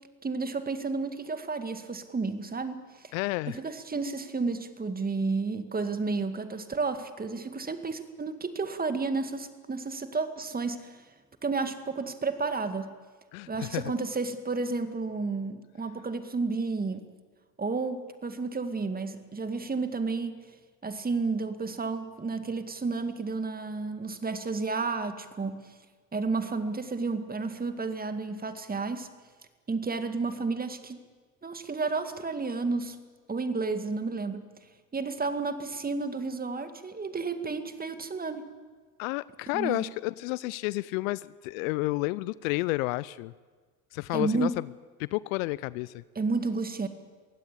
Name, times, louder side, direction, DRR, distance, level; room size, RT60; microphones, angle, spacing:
voice 1, 0.2-3.1 3.5-11.0 11.4-12.9 13.5-17.1 17.6-20.4 20.8-25.7 26.1-29.1 29.7-31.0 31.4-33.0 33.3-34.4 34.9-38.4 39.5-39.9 44.1-44.6 46.2-46.9, right 4 dB, 20° right, 9 dB, 2.0 m, -31 dB
voice 2, 3.1-3.6 13.3-13.8 39.0-43.3 43.9-44.7 45.0-46.0, left 21 dB, 60° left, 20 dB, 0.6 m, -31 dB
23.0 x 16.5 x 8.6 m, 1.4 s
hypercardioid pair, 70°, 46 cm